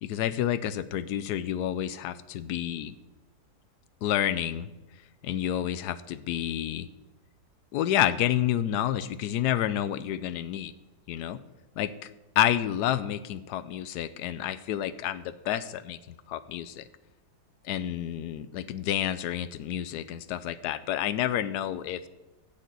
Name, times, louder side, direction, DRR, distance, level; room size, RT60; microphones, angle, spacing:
voice 1, 0.0-2.9 4.0-4.7 5.2-6.9 7.7-10.7 11.1-11.4 11.8-11.9 12.4-16.8 17.6-22.0, left 11 dB, 80° left, 13 dB, 1.2 m, -29 dB
14.0 x 6.5 x 8.3 m, 1.0 s
omnidirectional pair, 1.7 m